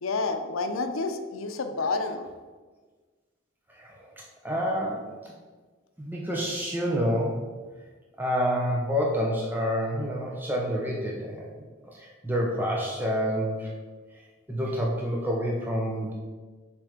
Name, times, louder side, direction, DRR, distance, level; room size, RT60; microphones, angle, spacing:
voice 1, 0.0-2.3, left 3 dB, 85° left, 7 dB, 0.6 m, -29 dB
voice 2, 3.7-4.1 4.4-5.3 6.0-7.4 8.2-11.5 11.8-13.7 14.5-16.1, equal, 10° right, -3 dB, 0.6 m, -28 dB
6.1 x 3.4 x 5.0 m, 1.4 s
head